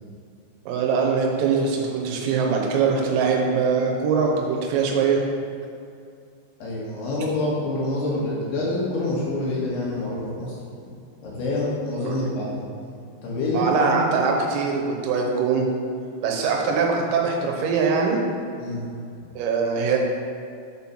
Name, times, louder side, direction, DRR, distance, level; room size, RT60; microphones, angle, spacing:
voice 1, 0.7-5.2 12.0-12.2 13.5-15.7 16.2-18.2 19.4-20.0, right 5 dB, 90° right, 0 dB, 3.7 m, -22 dB
voice 2, 6.6-10.6 11.2-12.6 13.2-14.2 18.6-18.8, left 2 dB, 65° left, -6 dB, 3.1 m, -26 dB
8.0 x 4.5 x 5.6 m, 2.5 s
omnidirectional pair, 5.8 m